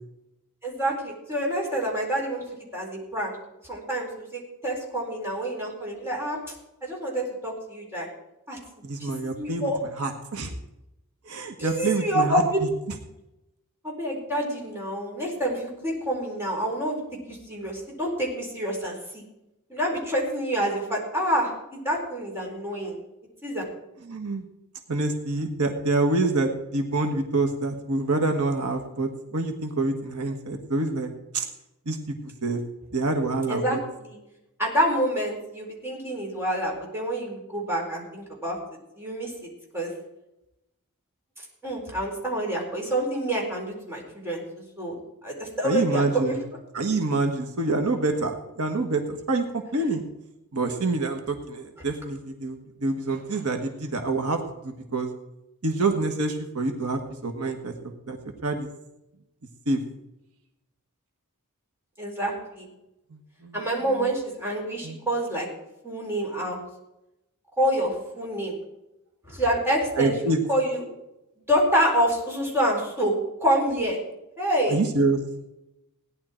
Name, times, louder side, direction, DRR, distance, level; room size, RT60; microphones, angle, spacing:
voice 1, 0.6-2.4 2.7-3.4 3.7-6.4 6.8-8.1 8.5-8.6 9.0-9.8 11.6-12.6 13.8-17.0 17.3-19.2 19.7-23.0 23.4-23.6 33.5-34.2 34.6-38.6 39.0-39.9 41.6-44.4 44.8-45.0 45.2-46.4 62.0-62.7 63.5-65.5 65.8-66.6 67.6-68.6 69.3-70.8 71.5-73.1 73.4-74.0 74.4-74.8, right 1 dB, 10° right, -3 dB, 4.1 m, -27 dB
voice 2, 8.8-9.7 10.0-10.5 11.3-12.7 24.0-24.4 24.9-31.5 31.8-32.1 32.4-32.6 32.9-33.8 45.6-46.4 46.7-50.0 50.5-55.1 55.6-58.2 58.4-58.7 59.7-59.8 63.1-63.6 63.9-64.1 64.8-65.0 70.0-70.4 74.7-75.2, right 2 dB, 75° right, 4 dB, 1.4 m, -26 dB
17.0 x 10.5 x 4.4 m, 0.91 s
head